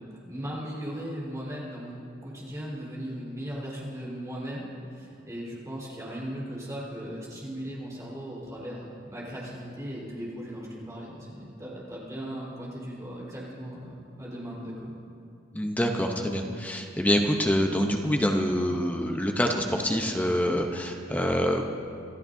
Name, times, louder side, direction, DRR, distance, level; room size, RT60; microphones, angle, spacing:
voice 1, 0.1-14.9, equal, 15° right, -6 dB, 4.1 m, -37 dB
voice 2, 15.5-21.6, equal, 10° left, 3 dB, 0.7 m, -26 dB
26.5 x 13.5 x 2.7 m, 2.5 s
head